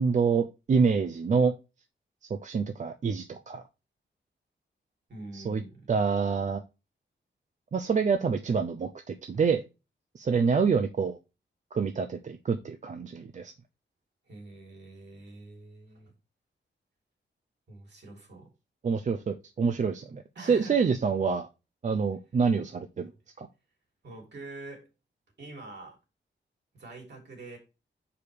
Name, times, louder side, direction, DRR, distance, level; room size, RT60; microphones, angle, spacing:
voice 1, 0.0-1.5 2.3-3.6 5.3-5.6 5.9-6.6 7.7-9.6 10.1-11.2 11.7-13.5 18.8-21.5 21.8-23.1 23.4-23.5, right 5 dB, 40° right, 6 dB, 0.5 m, -27 dB
voice 2, 5.1-5.9 10.3-10.5 14.3-16.1 17.7-18.5 20.3-20.8 23.0-23.2 24.0-24.8 25.4-26.0 26.7-27.6, right 2 dB, 60° right, 1 dB, 2.9 m, -45 dB
4.9 x 4.8 x 5.1 m, 0.28 s
wide cardioid pair, 160°, 20 cm